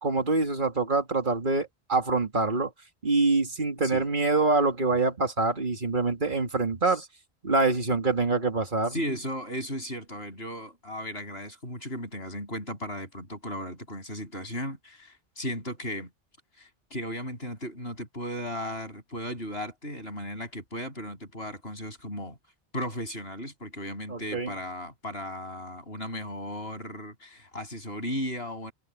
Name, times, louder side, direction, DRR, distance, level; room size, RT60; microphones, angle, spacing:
voice 1, 0.0-2.7 3.0-7.0 7.4-9.0 24.1-24.5, right 3 dB, 50° right, 2.3 m, -25 dB
voice 2, 8.9-16.1 16.6-22.4 22.7-28.7, equal, 70° left, 8.3 m, -36 dB
omnidirectional pair, 1.1 m